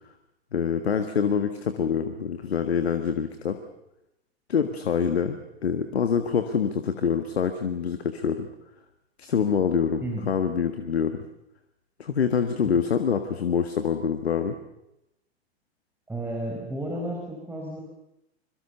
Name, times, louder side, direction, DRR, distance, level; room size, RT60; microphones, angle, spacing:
voice 1, 0.5-3.6 4.5-8.5 9.2-11.3 12.0-14.6, left 7 dB, 70° left, 8 dB, 1.7 m, -25 dB
voice 2, 16.1-17.8, right 1 dB, 5° right, -1 dB, 4.7 m, -32 dB
25.5 x 23.0 x 6.9 m, 0.86 s
figure-of-eight pair, 100°, 32 cm